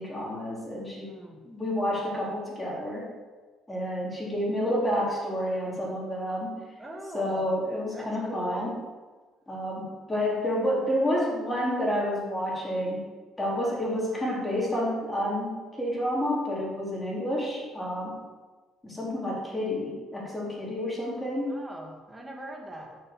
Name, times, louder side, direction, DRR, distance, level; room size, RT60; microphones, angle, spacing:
voice 1, 0.0-1.1 1.4-3.1 3.7-6.6 7.1-8.7 9.5-13.0 13.4-18.2 18.8-21.6, equal, 10° left, -5 dB, 3.9 m, -29 dB
voice 2, 1.1-1.4 6.8-7.5 7.9-8.7 21.5-23.0, right 1 dB, 10° right, 0 dB, 2.0 m, -40 dB
13.0 x 6.9 x 8.1 m, 1.3 s
cardioid pair, 165°, 0 cm